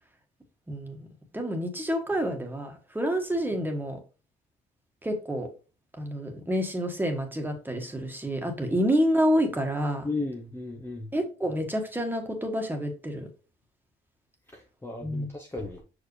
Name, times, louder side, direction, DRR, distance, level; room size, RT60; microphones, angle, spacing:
voice 1, 0.7-1.1 1.3-4.0 5.0-5.5 6.0-10.1 11.1-13.3 15.0-15.3, equal, 10° right, 1.7 m, -28 dB
voice 2, 10.0-11.1 14.5-15.8, left 3 dB, 10° left, 1.0 m, -35 dB
6.0 x 4.9 x 3.3 m
cardioid pair, 90°, 20 cm